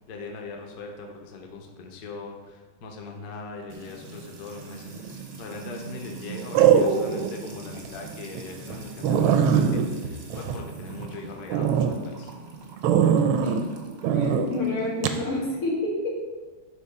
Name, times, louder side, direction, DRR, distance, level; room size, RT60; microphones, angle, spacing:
voice 1, 0.1-12.3, left 3 dB, 60° left, 1 dB, 1.2 m, -40 dB
Music / Water tap faucet / Trickle dribble, 3.7-15.5, right 6 dB, 50° right, 0.7 m, -42 dB
sound 1, 4.9-5.4 6.5-7.3 7.8-7.9 8.4-8.5 8.7-8.8 9.0-11.1 11.5-11.9 12.8-13.6 14.0-14.5 15.0-15.2, right 7 dB, 80° right, 1.4 m, -21 dB
voice 2, 14.1-16.1, left 2 dB, 90° left, -6 dB, 3.1 m, -28 dB
11.0 x 3.7 x 3.7 m, 1.3 s
omnidirectional pair, 2.4 m